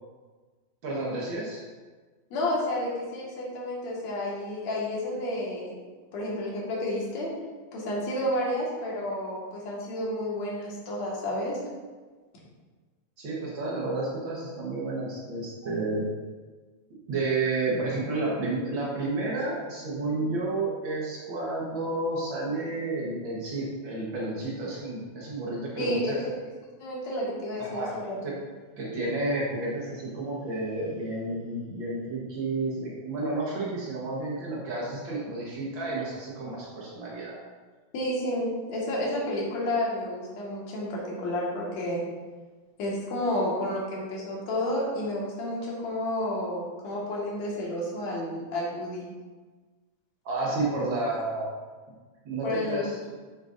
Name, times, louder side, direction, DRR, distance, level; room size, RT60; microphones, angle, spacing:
voice 1, 0.8-1.6 13.2-16.1 17.1-26.2 27.6-27.9 28.2-28.3 28.8-37.3 50.2-51.5 52.2-53.0, right 2 dB, 85° right, -5 dB, 1.0 m, -31 dB
voice 2, 2.3-5.7 6.1-7.3 7.7-11.6 25.8-26.1 26.8-28.2 37.9-42.0 42.8-49.0 52.4-52.9, left 1 dB, 55° left, -4 dB, 2.7 m, -31 dB
12.0 x 6.6 x 2.6 m, 1.4 s
omnidirectional pair, 4.3 m